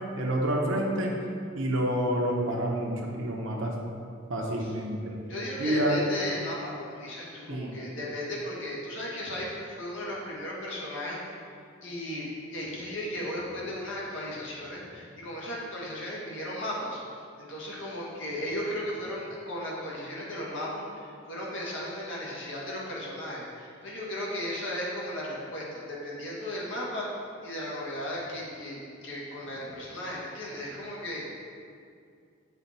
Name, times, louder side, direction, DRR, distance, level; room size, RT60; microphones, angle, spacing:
voice 1, 0.2-1.1 1.5-3.7 4.3-5.1 5.6-6.0 7.5-7.7, right 1 dB, 70° right, -1 dB, 0.9 m, -28 dB
voice 2, 5.3-11.2 11.8-17.0 17.4-27.1 27.4-31.2, left 1 dB, 65° left, -5 dB, 1.6 m, -36 dB
7.3 x 4.3 x 4.2 m, 2.3 s
head